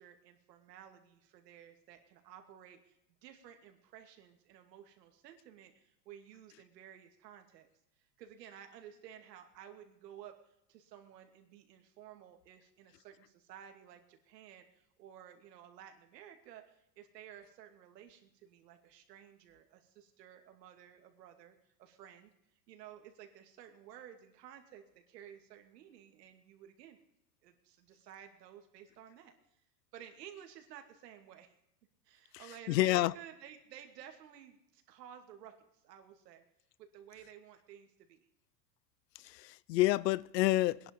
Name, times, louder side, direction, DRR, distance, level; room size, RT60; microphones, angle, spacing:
voice 1, 0.0-7.7 8.0-22.3 22.7-27.0 27.4-29.3 29.9-31.5 32.0-36.4 36.8-38.3, right 10 dB, 75° right, 2.5 m, -54 dB
voice 2, 32.7-33.1 39.2-40.9, left 17 dB, 85° left, 0.7 m, -28 dB
21.0 x 10.5 x 5.2 m
supercardioid pair, 180°, 48 cm